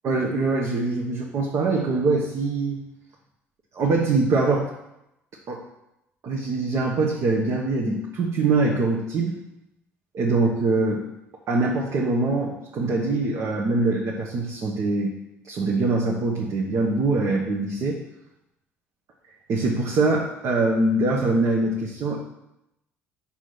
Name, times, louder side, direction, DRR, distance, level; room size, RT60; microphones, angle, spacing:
voice 1, 0.0-2.8 3.7-4.7 5.5-5.6 6.2-9.4 10.1-11.0 11.5-15.1 15.5-18.0 19.5-22.2, right 3 dB, 50° right, -1 dB, 1.1 m, -23 dB
5.7 x 4.8 x 6.0 m, 0.86 s
hypercardioid pair, 55°, 7 cm